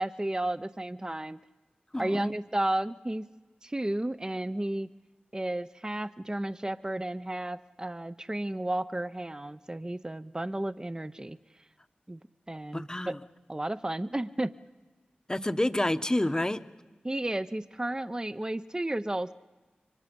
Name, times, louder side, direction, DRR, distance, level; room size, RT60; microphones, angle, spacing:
voice 1, 0.0-1.4 2.0-3.2 3.6-4.9 5.3-11.4 12.1-12.2 12.5-13.1 13.5-14.5 17.0-19.3, right 1 dB, 20° right, 12 dB, 0.8 m, -32 dB
voice 2, 1.9-2.3 12.7-13.2 15.3-16.6, left 1 dB, 20° left, 10 dB, 1.0 m, -28 dB
29.5 x 25.0 x 5.4 m, 1.2 s
cardioid pair, 40°, 3 cm